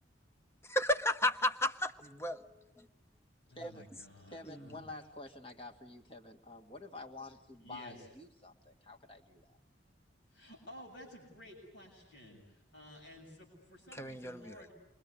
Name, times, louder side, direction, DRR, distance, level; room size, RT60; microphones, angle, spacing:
voice 1, 0.7-2.4 2.8-2.9 4.5-4.6 14.0-14.5, left 1 dB, 15° left, 9 dB, 0.9 m, -33 dB
voice 2, 3.5-5.0 7.6-8.1 10.3-14.7, equal, 85° left, 1 dB, 7.7 m, -53 dB
voice 3, 4.3-9.6, left 2 dB, 30° left, 5 dB, 1.8 m, -49 dB
28.5 x 23.0 x 8.5 m, 0.87 s
head